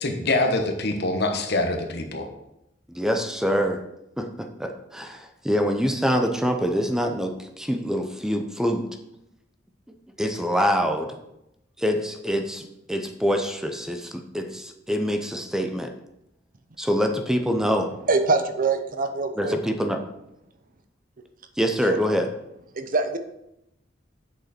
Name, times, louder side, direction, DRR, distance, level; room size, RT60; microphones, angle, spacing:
voice 1, 0.0-2.3, left 2 dB, 60° left, 5 dB, 1.2 m, -24 dB
voice 2, 2.9-3.8 4.2-8.9 10.2-11.1 11.8-12.6 12.9-15.9 16.8-17.9 19.4-20.0 21.6-22.3, equal, 5° right, 5 dB, 0.6 m, -25 dB
voice 3, 18.1-19.6 21.9-22.0 22.7-23.2, right 3 dB, 50° right, 8 dB, 0.7 m, -24 dB
7.9 x 6.5 x 4.4 m, 0.85 s
head